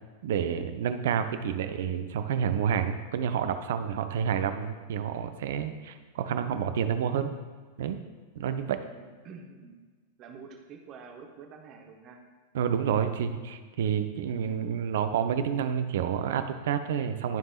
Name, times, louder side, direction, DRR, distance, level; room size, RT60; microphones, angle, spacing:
voice 1, 0.2-7.3 7.8-8.0 8.4-8.8 12.5-17.4, right 8 dB, 55° right, 9 dB, 0.5 m, -29 dB
voice 2, 8.5-9.7 10.2-12.2 14.4-14.7, right 5 dB, 35° right, 2 dB, 1.1 m, -48 dB
13.0 x 5.4 x 2.4 m, 1.4 s
figure-of-eight pair, 90°, 0 cm